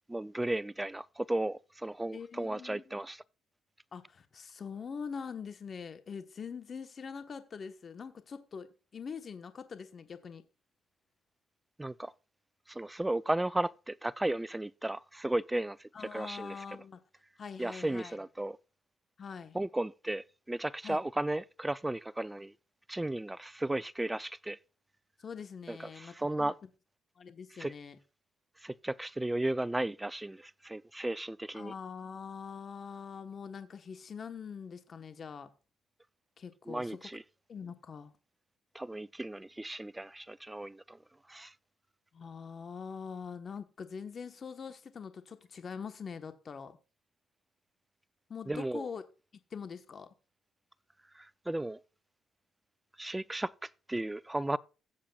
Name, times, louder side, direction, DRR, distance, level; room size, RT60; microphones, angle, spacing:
voice 1, 0.1-3.2 11.8-12.1 12.7-16.8 17.6-18.6 19.5-22.5 22.9-24.6 25.7-26.6 27.6-27.7 28.6-31.7 36.7-37.2 38.7-41.0 41.3-41.5 48.5-48.9 51.1-51.8 53.0-54.6, right 1 dB, 10° right, 0.4 m, -35 dB
voice 2, 2.1-3.0 3.9-10.4 15.9-17.0 17.4-18.1 19.2-19.6 20.8-21.0 25.2-26.5 27.2-28.0 31.5-35.5 36.4-37.0 37.5-38.1 42.1-46.8 48.3-49.0 49.5-50.1, left 6 dB, 45° left, 1.2 m, -43 dB
16.5 x 7.4 x 2.4 m
cardioid pair, 90°, 0 cm